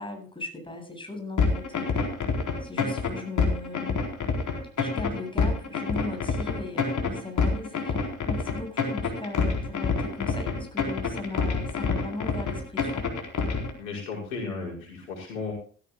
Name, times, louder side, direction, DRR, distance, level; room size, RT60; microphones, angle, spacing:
voice 1, 0.0-2.0 2.6-4.0 4.8-13.1, left 3 dB, 15° left, 3 dB, 7.9 m, -38 dB
sound 1, 1.4-13.7, left 5 dB, 50° left, 4.4 m, -27 dB
voice 2, 13.8-15.5, left 4 dB, 80° left, -3 dB, 5.7 m, -35 dB
16.5 x 15.5 x 2.4 m, 0.42 s
hypercardioid pair, 60°, 39 cm